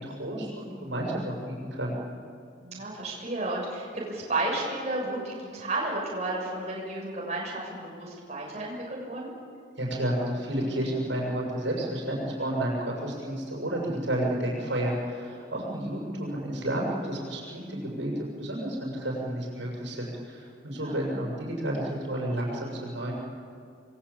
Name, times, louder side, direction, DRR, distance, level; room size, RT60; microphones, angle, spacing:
voice 1, 0.0-2.0 9.8-23.1, right 1 dB, 80° right, -2 dB, 7.1 m, -31 dB
voice 2, 2.6-9.3 20.7-21.0, right 2 dB, 35° right, -3 dB, 6.8 m, -32 dB
28.0 x 21.5 x 8.7 m, 2.3 s
head